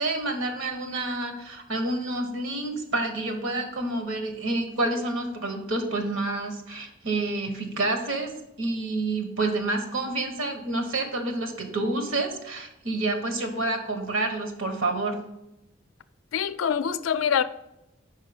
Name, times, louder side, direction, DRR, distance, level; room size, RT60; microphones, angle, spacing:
voice 1, 0.0-15.3, right 2 dB, 90° right, 1.2 m, -28 dB
voice 2, 16.3-17.4, left 7 dB, 90° left, 0.4 m, -25 dB
5.6 x 4.7 x 5.1 m
head